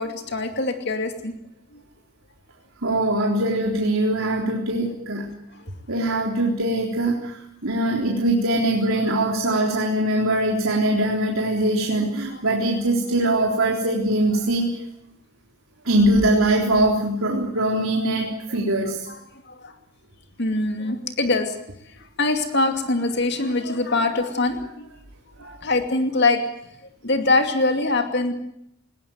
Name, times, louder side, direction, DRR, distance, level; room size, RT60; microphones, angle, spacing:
voice 1, 0.0-1.3 1.7-1.8 5.5-5.6 18.5-18.7 19.1-19.2 19.5-19.7 20.4-21.6 22.2-24.9 25.4-26.5 27.0-28.3, left 2 dB, 50° left, 6 dB, 2.5 m, -23 dB
voice 2, 2.8-5.3 5.9-14.8 15.8-19.1 25.4-25.6, right 1 dB, 75° right, -1 dB, 3.8 m, -22 dB
19.5 x 19.5 x 9.2 m, 0.78 s
head